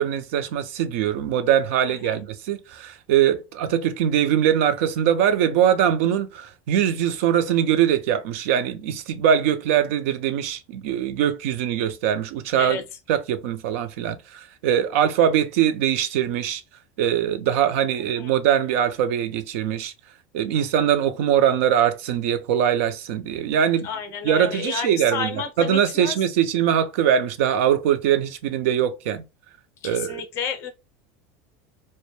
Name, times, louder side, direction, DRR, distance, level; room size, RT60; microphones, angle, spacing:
voice 1, 0.0-12.8 13.1-16.6 17.0-19.9 20.3-23.9 24.2-29.2 29.8-30.2, right 9 dB, 75° right, 0.4 m, -22 dB
voice 2, 23.8-26.2 29.8-30.7, left 6 dB, 40° left, 0.5 m, -31 dB
2.1 x 2.1 x 2.9 m
supercardioid pair, 155°, 7 cm